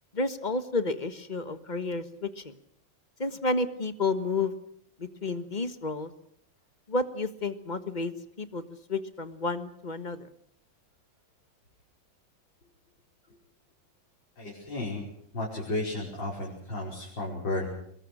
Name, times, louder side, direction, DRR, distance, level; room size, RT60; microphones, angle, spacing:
voice 1, 0.1-2.5 3.2-4.5 5.0-6.1 6.9-8.1 8.4-8.6 8.9-10.3, left 3 dB, 25° left, 11 dB, 1.3 m, -31 dB
voice 2, 14.4-15.0 15.3-17.7, left 2 dB, 65° left, -4 dB, 6.0 m, -33 dB
24.5 x 22.0 x 6.3 m, 0.69 s
omnidirectional pair, 2.1 m